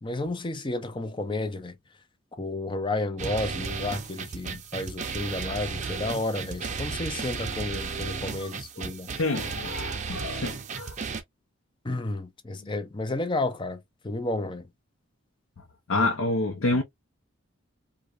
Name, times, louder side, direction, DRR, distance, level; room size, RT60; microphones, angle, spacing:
voice 1, 0.0-1.7 2.3-9.1 11.8-14.7 16.0-16.1, left 2 dB, 25° left, 0.5 m, -32 dB
sound 1, 3.2-11.2, right 5 dB, 35° right, 0.5 m, -34 dB
voice 2, 9.1-11.0 15.9-16.8, left 2 dB, 75° left, 0.6 m, -27 dB
4.8 x 2.2 x 2.4 m
head